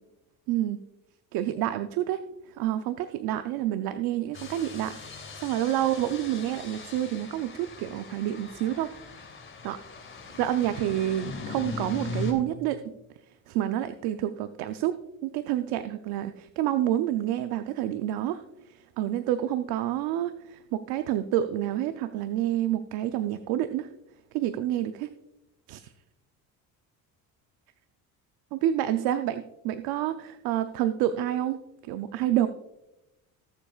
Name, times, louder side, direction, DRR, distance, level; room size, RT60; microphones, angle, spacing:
voice 1, 0.5-0.8 1.3-2.2 2.5-8.9 9.6-9.8 10.4-12.8 13.5-14.9 15.2-18.4 18.7-23.9 24.3-25.1 25.7-25.9 28.5-31.6 31.8-32.5, right 12 dB, 90° right, 10 dB, 0.6 m, -28 dB
sound 1, 4.3-12.3, left 3 dB, 35° left, 2.8 m, -39 dB
18.5 x 7.3 x 2.4 m, 0.92 s
cardioid pair, 105°, 36 cm